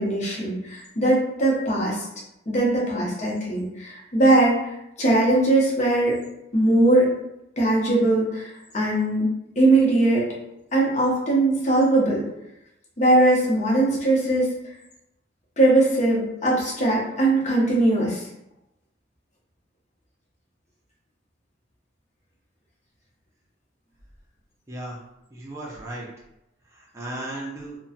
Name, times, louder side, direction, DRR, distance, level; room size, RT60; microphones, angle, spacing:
voice 1, 0.0-2.1 2.5-6.2 6.5-7.1 7.6-10.3 10.7-12.2 13.0-14.5 15.6-18.3, right 2 dB, 40° left, -3 dB, 0.8 m, -20 dB
voice 2, 24.7-25.0 25.3-26.1 26.7-27.8, right 1 dB, 15° right, -5 dB, 0.5 m, -35 dB
2.9 x 2.2 x 2.7 m, 0.85 s
head